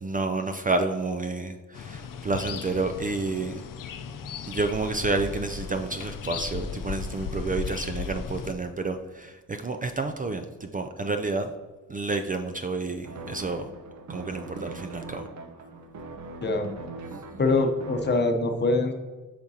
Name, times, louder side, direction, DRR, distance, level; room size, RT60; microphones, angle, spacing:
voice 1, 0.0-3.6 4.5-11.5 11.9-13.7 14.1-15.3, right 3 dB, 25° right, 7 dB, 0.3 m, -30 dB
sound 1, 1.7-8.5, left 6 dB, 70° left, 0.6 m, -36 dB
sound 2, 13.0-18.2, right 2 dB, 55° right, 0.8 m, -40 dB
voice 2, 17.4-18.9, left 3 dB, 30° left, 5 dB, 0.8 m, -23 dB
8.5 x 5.9 x 2.8 m, 1.3 s
cardioid pair, 115°, 33 cm